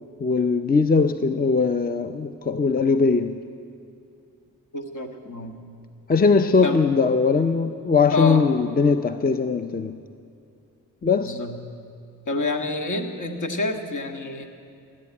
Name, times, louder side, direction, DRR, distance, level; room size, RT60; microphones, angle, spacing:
voice 1, 0.2-3.4 6.1-10.0 11.0-11.4, left 4 dB, 25° left, 9 dB, 0.6 m, -20 dB
voice 2, 4.7-5.6 6.6-6.9 8.1-8.5 11.2-11.6 12.3-14.5, left 2 dB, 55° left, 4 dB, 1.8 m, -27 dB
17.0 x 8.6 x 9.8 m, 2.5 s
cardioid pair, 65°, 36 cm